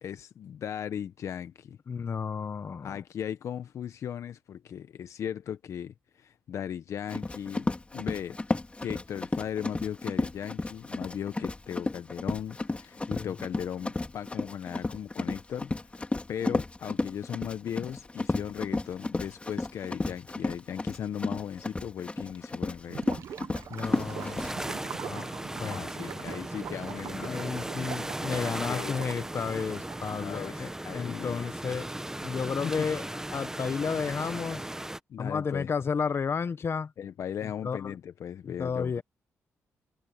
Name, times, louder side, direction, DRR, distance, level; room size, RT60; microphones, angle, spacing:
voice 1, 0.0-1.8 2.8-8.4 8.8-15.9 16.3-23.2 25.6-27.4 28.7-29.0 29.5-29.6 30.2-31.4 32.6-32.9 35.1-35.7 37.0-39.0, left 9 dB, 70° left, 0.9 m, -37 dB
voice 2, 1.9-3.0 13.1-13.4 23.7-25.9 27.2-31.9 32.2-34.6 35.2-36.9 37.4-38.0 38.4-39.0, left 6 dB, 50° left, 1.3 m, -33 dB
Run, 7.1-24.5, left 2 dB, 25° left, 3.4 m, -33 dB
Gurgling / Liquid, 22.8-30.6, right 9 dB, 75° right, 1.1 m, -43 dB
sound 1, 23.8-35.0, right 1 dB, 10° right, 1.4 m, -37 dB
cardioid pair, 65°, 5 cm